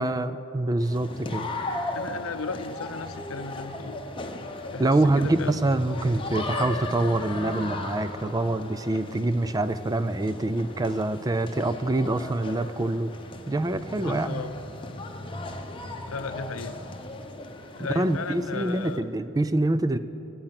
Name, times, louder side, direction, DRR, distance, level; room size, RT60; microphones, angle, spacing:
voice 1, 0.0-1.5 4.8-13.1 13.5-14.4 18.0-20.0, right 2 dB, 20° right, 12 dB, 0.4 m, -25 dB
sound 1, 0.8-19.0, left 2 dB, 25° left, 0.9 m, -37 dB
voice 2, 1.9-4.0 4.7-5.5 14.0-14.5 16.1-16.8 17.8-19.1, left 4 dB, 85° left, 11 dB, 0.7 m, -35 dB
22.5 x 8.7 x 5.9 m, 2.9 s
head